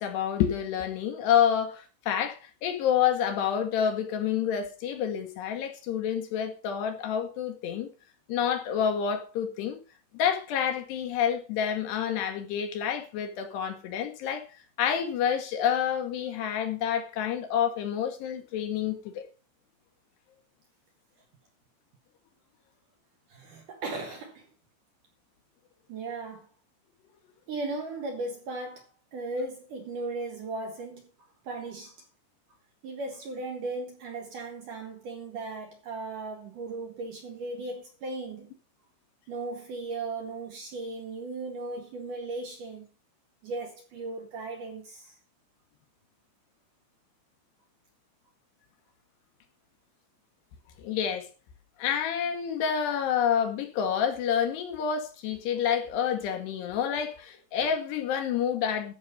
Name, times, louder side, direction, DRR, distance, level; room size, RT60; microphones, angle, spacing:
voice 1, 0.0-7.9 8.3-9.8 10.1-14.5 14.8-19.3 50.8-51.3 51.8-58.9, left 8 dB, 70° left, 3.0 m, -28 dB
voice 2, 23.3-24.5 25.9-26.5 27.5-28.8 29.1-31.0 31.4-32.0 32.8-38.5 39.3-42.9 43.4-45.2, right 3 dB, 60° right, 2.4 m, -36 dB
14.0 x 6.4 x 5.2 m
omnidirectional pair, 5.4 m